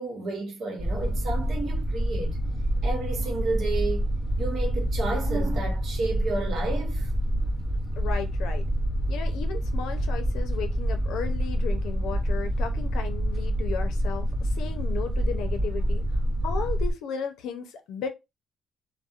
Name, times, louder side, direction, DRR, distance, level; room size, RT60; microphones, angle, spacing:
voice 1, 0.0-2.4 2.8-4.1 4.4-7.1, right 3 dB, 65° right, 1.0 m, -31 dB
sound 1, 0.8-16.9, equal, 40° right, 0.8 m, -27 dB
voice 2, 8.0-8.6 9.1-16.0 16.4-18.1, left 6 dB, 85° left, 0.5 m, -35 dB
2.7 x 2.1 x 2.4 m
cardioid pair, 90°, 0 cm